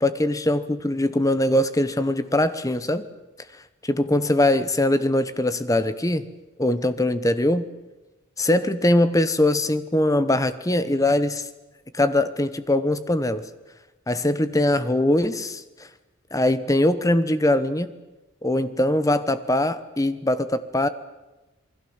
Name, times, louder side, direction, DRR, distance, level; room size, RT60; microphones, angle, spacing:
voice 1, 0.0-3.0 3.8-6.3 6.6-7.7 8.4-11.4 11.9-13.4 14.1-15.9 16.3-17.9 18.4-20.9, left 1 dB, 15° left, 13 dB, 1.0 m, -22 dB
28.0 x 21.0 x 7.2 m, 1.1 s
head